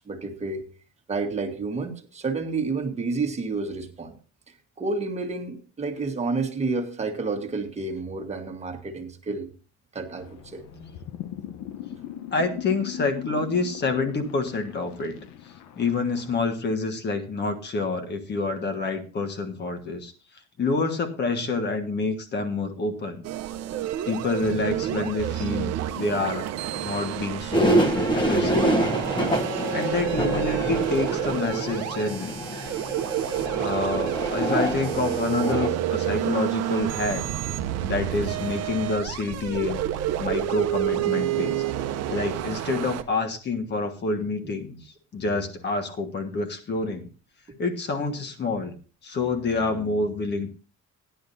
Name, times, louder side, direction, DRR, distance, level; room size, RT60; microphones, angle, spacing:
voice 1, 0.1-0.6 1.1-4.1 4.8-9.5 9.9-10.9, right 3 dB, 20° right, 4 dB, 1.4 m, -30 dB
sound 1, 10.2-16.4, left 10 dB, 70° left, 0.9 m, -39 dB
voice 2, 12.3-15.2 15.8-20.1 20.6-23.2 24.0-28.8 29.1-29.2 29.7-32.4 33.6-37.2 37.8-39.8 40.2-41.6 42.1-47.1 47.6-48.7 49.0-50.5, left 3 dB, 35° left, 6 dB, 1.4 m, -28 dB
sound 2, 23.2-43.0, right 11 dB, 60° right, 0.8 m, -29 dB
sound 3, 27.5-35.7, right 1 dB, 15° left, 1.2 m, -26 dB
16.0 x 10.5 x 2.7 m, 0.36 s
cardioid pair, 150°, 29 cm